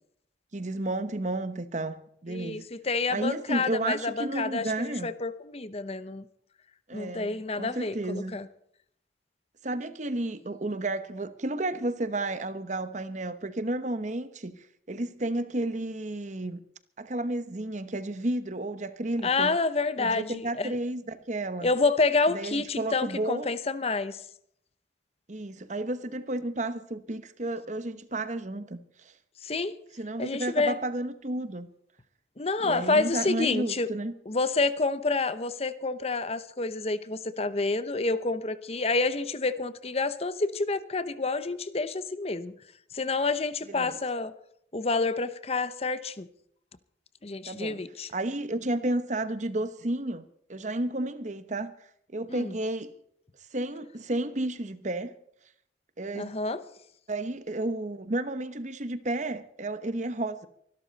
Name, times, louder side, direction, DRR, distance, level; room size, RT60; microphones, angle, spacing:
voice 1, 0.5-2.7 3.1-5.1 6.9-8.4 9.6-16.6 17.0-19.6 20.0-21.7 22.3-23.5 25.3-29.1 30.0-31.7 32.6-34.1 43.7-43.9 47.4-47.8 48.1-51.7 52.1-52.9 53.5-55.2 56.0-56.3 57.1-60.5, right 2 dB, 45° right, 1.1 m, -32 dB
voice 2, 2.3-6.3 6.9-8.5 19.2-20.8 21.6-24.2 29.4-29.7 30.2-30.7 32.4-33.9 34.3-42.5 42.9-44.3 44.7-46.3 47.2-48.1 52.3-52.5 56.2-56.6, left 3 dB, 35° left, 0.9 m, -28 dB
24.5 x 12.5 x 4.1 m
head